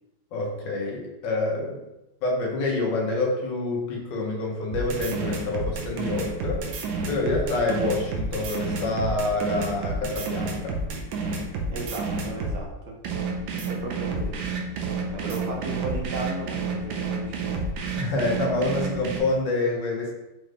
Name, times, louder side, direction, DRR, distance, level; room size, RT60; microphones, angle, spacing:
voice 1, 0.3-1.8 2.2-6.6 7.1-10.8 18.0-20.1, left 2 dB, 70° left, -1 dB, 1.5 m, -27 dB
sound 1, 4.7-12.6 13.0-19.2, right 4 dB, 85° right, 1.4 m, -30 dB
voice 2, 11.7-13.0 13.7-14.5 15.1-17.5, right 3 dB, 70° right, 0 dB, 1.2 m, -35 dB
5.4 x 2.5 x 3.2 m, 0.97 s
omnidirectional pair, 2.1 m